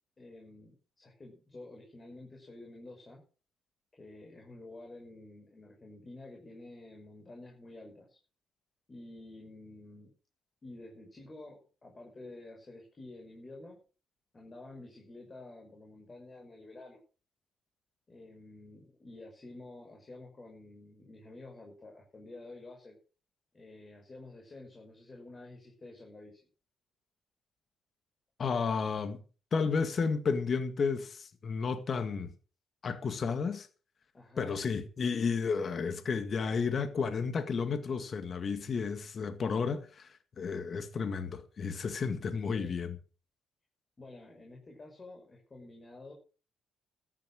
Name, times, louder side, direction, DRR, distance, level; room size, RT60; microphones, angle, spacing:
voice 1, 0.2-3.2 3.9-8.2 8.9-10.1 10.6-13.8 14.3-17.0 18.1-23.0 23.5-26.5 34.1-34.7 42.5-42.8 44.0-46.1, left 2 dB, 30° left, 5.9 m, -50 dB
voice 2, 28.4-29.2 29.5-32.3 32.8-33.7 34.4-43.0, left 5 dB, 45° left, 2.1 m, -32 dB
13.5 x 10.5 x 6.3 m
cardioid pair, 90°, 0 cm